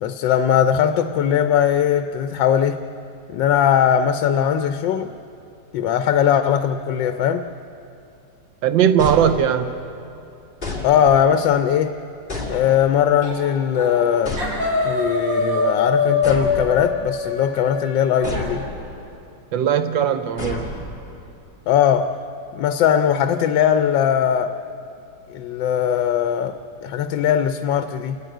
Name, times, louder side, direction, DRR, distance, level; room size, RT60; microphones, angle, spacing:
voice 1, 0.0-2.8 3.3-5.1 5.7-7.5 10.8-11.9 12.5-14.4 14.8-18.7 21.7-22.2 22.5-24.6 25.3-28.2, left 9 dB, 80° left, 8 dB, 1.4 m, -19 dB
voice 2, 8.6-9.7 19.5-20.7, right 9 dB, 90° right, 9 dB, 1.5 m, -19 dB
sound 1, 9.0-9.9 10.6-11.4 12.3-13.2 14.2-15.1 16.2-17.3 18.2-19.0 20.4-21.3, left 2 dB, 25° left, 3.0 m, -31 dB
sound 2, 13.2-13.5 13.7-14.1 14.4-18.4, left 3 dB, 45° right, 6.7 m, -23 dB
29.0 x 11.0 x 9.1 m, 2.7 s
omnidirectional pair, 2.0 m